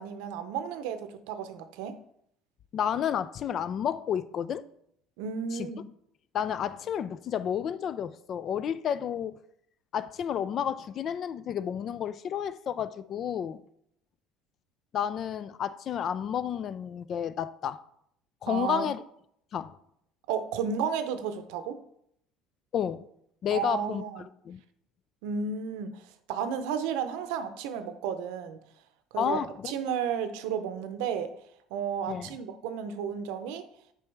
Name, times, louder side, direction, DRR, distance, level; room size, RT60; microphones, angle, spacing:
voice 1, 0.0-1.9 5.2-5.8 18.5-18.9 20.3-21.8 23.5-24.3 25.2-26.0 26.3-28.6 29.1-29.4 29.6-31.3 31.7-33.7, right 7 dB, 80° right, 0.6 m, -32 dB
voice 2, 2.7-4.7 5.5-5.7 6.3-9.4 9.9-13.6 14.9-17.8 18.4-19.0 19.5-19.8 22.7-23.1 23.4-24.6 29.2-29.7 32.1-32.4, left 9 dB, 50° left, 0.3 m, -31 dB
6.8 x 4.7 x 3.4 m
supercardioid pair, 100°, 0 cm